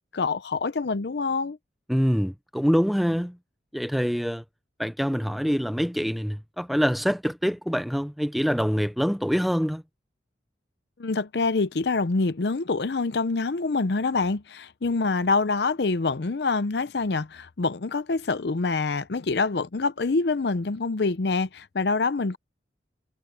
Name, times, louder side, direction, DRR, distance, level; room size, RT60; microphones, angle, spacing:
voice 1, 0.1-1.6 11.0-22.4, left 3 dB, 60° left, 0.6 m, -26 dB
voice 2, 1.9-3.4 3.7-4.4 4.8-9.8, equal, ahead, 0.6 m, -25 dB
head